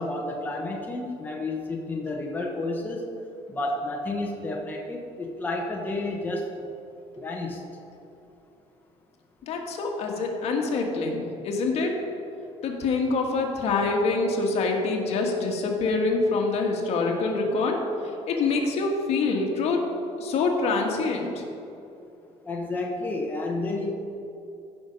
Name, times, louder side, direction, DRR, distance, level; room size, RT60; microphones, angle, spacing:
voice 1, 0.0-3.0 3.5-6.5 7.2-7.6 22.5-23.9, left 2 dB, 15° left, -1 dB, 1.1 m, -30 dB
voice 2, 9.4-11.9 12.6-17.8 18.3-19.9 20.2-21.4, left 3 dB, 60° left, 1 dB, 1.6 m, -25 dB
15.0 x 5.8 x 5.3 m, 2.8 s
cardioid pair, 150°, 12 cm